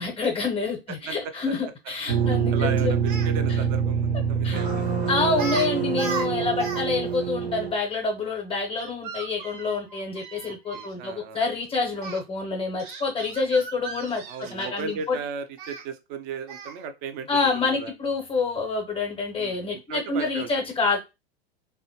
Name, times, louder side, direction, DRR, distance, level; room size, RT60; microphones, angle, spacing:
voice 1, 0.0-2.9 4.4-4.6 5.1-15.2 17.3-21.0, left 4 dB, 20° left, 0.6 m, -27 dB
sound 1, 2.1-7.7, right 7 dB, 90° right, 0.6 m, -25 dB
voice 2, 2.2-4.9 7.2-7.3 10.5-11.5 14.3-17.9 19.4-20.5, right 6 dB, 30° right, 0.4 m, -36 dB
Speech, 3.1-3.3 4.6-4.9 5.3-5.7 5.9-6.8 7.1-7.2 8.8-10.9 12.0-12.2 12.8-14.9 15.6-15.8 16.5-16.8, right 4 dB, 50° right, 0.8 m, -36 dB
2.7 x 2.2 x 2.8 m
figure-of-eight pair, 95°, 31 cm